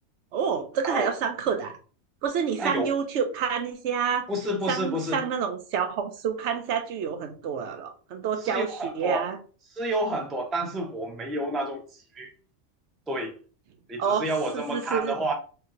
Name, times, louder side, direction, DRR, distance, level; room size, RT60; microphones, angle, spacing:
voice 1, 0.3-1.8 2.2-4.3 4.7-9.4 14.0-14.3 14.5-15.2, right 7 dB, 70° right, 0.8 m, -28 dB
voice 2, 2.6-2.9 4.3-5.2 8.4-9.3 9.7-12.3 13.1-13.4 13.9-15.3, right 1 dB, ahead, 0.3 m, -30 dB
4.4 x 2.8 x 2.5 m
omnidirectional pair, 1.3 m